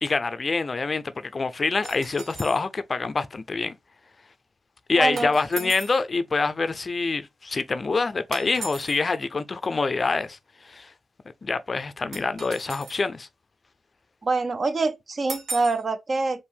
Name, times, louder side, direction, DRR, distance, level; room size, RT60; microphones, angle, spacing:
voice 1, 0.0-3.8 4.9-10.4 10.6-10.9 11.4-13.3, left 4 dB, 45° left, 0.4 m, -26 dB
sound 1, 1.8-2.6 5.2-6.0 8.3-9.0 12.1-13.1 15.3-15.8, right 3 dB, 90° right, 1.1 m, -37 dB
voice 2, 5.0-5.3 5.6-5.7 14.2-16.4, right 3 dB, 45° right, 0.6 m, -25 dB
4.4 x 2.5 x 3.4 m
cardioid pair, 80°, 0 cm